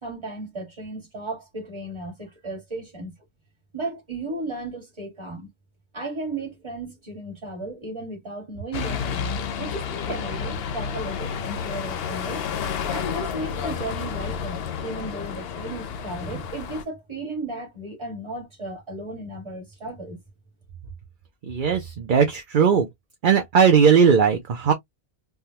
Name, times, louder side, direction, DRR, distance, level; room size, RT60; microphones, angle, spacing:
voice 1, 0.0-3.2 3.7-5.5 5.9-12.4 12.9-20.2, right 2 dB, 25° right, 1.8 m, -35 dB
sound 1, 8.7-16.8, left 6 dB, 65° left, 0.8 m, -30 dB
voice 2, 21.5-22.9 23.2-24.7, right 6 dB, 55° right, 0.8 m, -18 dB
3.5 x 2.2 x 2.8 m
omnidirectional pair, 1.1 m